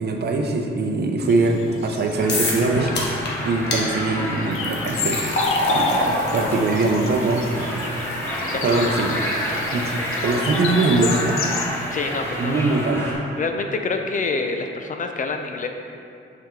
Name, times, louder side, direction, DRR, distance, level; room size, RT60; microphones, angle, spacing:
voice 1, 0.0-2.9 3.4-5.2 5.7-7.9 8.6-9.2 9.7-11.5 12.4-13.1, right 3 dB, 50° right, 3 dB, 0.6 m, -22 dB
sound 1, 1.3-11.7, left 5 dB, 85° left, 0.5 m, -33 dB
sound 2, 2.2-13.1, equal, 10° left, 0.9 m, -29 dB
sound 3, 2.3-2.7 3.0-3.3 3.7-3.8 4.5-11.6, left 1 dB, 55° left, 1.2 m, -28 dB
voice 2, 8.4-8.9 11.9-12.6 13.4-15.7, left 4 dB, 40° left, 5 dB, 0.4 m, -27 dB
5.9 x 5.9 x 3.7 m, 2.5 s
wide cardioid pair, 150°, 21 cm